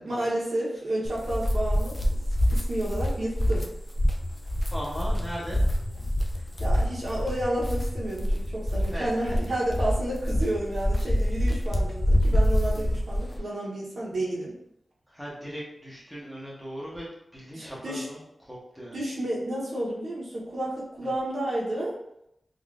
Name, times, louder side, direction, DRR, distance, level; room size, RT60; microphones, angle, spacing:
voice 1, 0.0-2.0 2.5-3.6 6.6-14.5 17.5-18.1 18.9-22.0, right 1 dB, 65° right, -5 dB, 0.9 m, -31 dB
sound 1, 1.0-13.4, equal, 20° left, 0.4 m, -26 dB
voice 2, 4.7-5.6 8.9-9.1 13.2-13.4 15.1-17.1 17.3-18.9 21.0-21.1, equal, 5° left, -6 dB, 0.9 m, -38 dB
3.5 x 2.5 x 2.4 m, 0.77 s
wide cardioid pair, 140°, 0 cm